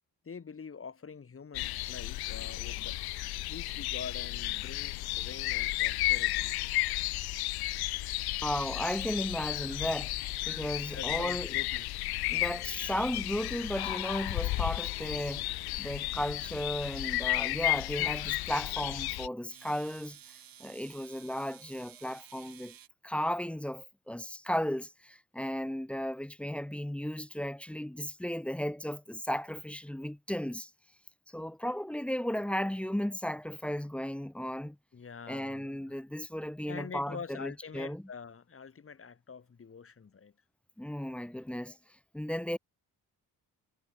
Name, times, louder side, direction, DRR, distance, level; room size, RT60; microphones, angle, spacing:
voice 1, 0.2-3.0 3.5-6.6 10.9-11.9 12.2-12.3 34.9-36.0 36.7-40.3, left 5 dB, 35° left, 3.4 m, -45 dB
sound 1, 1.5-19.3, left 18 dB, 75° left, 0.5 m, -33 dB
voice 2, 8.4-10.1 10.5-11.5 12.3-15.5 15.8-20.2 20.6-22.7 23.0-30.7 31.3-34.8 35.3-38.0 40.8-41.8 42.1-42.6, equal, 5° left, 0.8 m, -35 dB
sound 2, 14.7-17.4 19.5-22.9, right 10 dB, 65° right, 2.9 m, -56 dB
cardioid pair, 100°, 38 cm